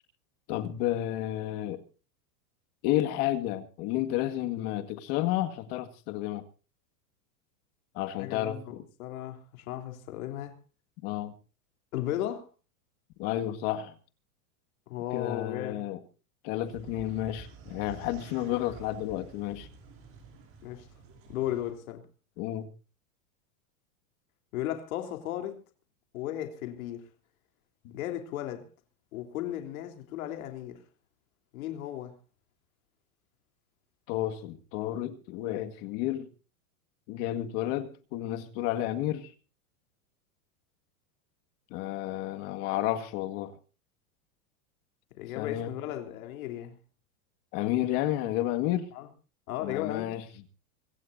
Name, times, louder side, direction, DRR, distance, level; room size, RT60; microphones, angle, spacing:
voice 1, 0.5-1.8 2.8-6.4 7.9-8.8 11.0-11.3 13.2-13.9 15.1-16.0 16.4-19.7 22.4-22.7 27.8-27.9 34.1-36.3 37.1-39.3 41.7-43.6 45.4-45.7 47.5-48.9 49.6-50.2, left 13 dB, 40° left, 1.9 m, -31 dB
voice 2, 8.2-10.6 11.9-12.5 14.9-15.9 20.6-20.9 21.3-22.0 24.5-25.6 26.1-27.1 27.9-28.7 29.1-30.8 31.5-32.1 45.2-46.8 48.9-49.1 49.5-50.1, left 12 dB, 65° left, 3.6 m, -35 dB
sound 1, 16.6-21.7, right 4 dB, 30° right, 6.4 m, -49 dB
25.5 x 15.5 x 2.7 m
supercardioid pair, 160°, 44 cm